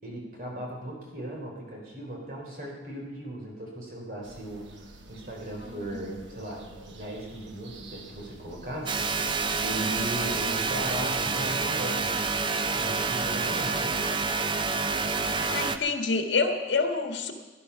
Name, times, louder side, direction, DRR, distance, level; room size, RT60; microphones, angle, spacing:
voice 1, 0.0-9.0 9.6-12.1 12.6-14.0, right 1 dB, 50° right, -1 dB, 3.7 m, -37 dB
sound 1, 4.2-11.1, right 2 dB, 80° right, 1.2 m, -49 dB
voice 2, 5.6-6.0 15.3-17.3, left 4 dB, 75° left, 4 dB, 1.6 m, -28 dB
sound 2, 8.9-15.8, right 4 dB, 25° right, 0.5 m, -28 dB
16.5 x 10.5 x 5.7 m, 1.2 s
head